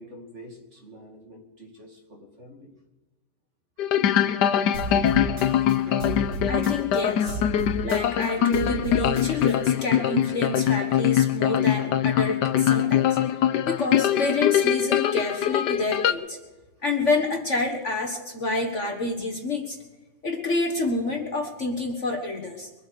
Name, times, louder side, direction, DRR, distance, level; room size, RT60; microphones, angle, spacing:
voice 1, 0.0-2.7, equal, 35° right, 1 dB, 2.6 m, -46 dB
sound 1, 3.8-16.1, left 10 dB, 65° left, 1.3 m, -23 dB
sound 2, 4.7-7.0 7.3-9.5, right 3 dB, 75° right, 5.7 m, -33 dB
voice 2, 6.5-7.4 7.8-13.2 13.7-16.4 16.8-19.8 20.2-22.7, left 2 dB, 40° left, 3 dB, 1.6 m, -28 dB
23.0 x 8.4 x 6.7 m, 1.1 s
omnidirectional pair, 2.1 m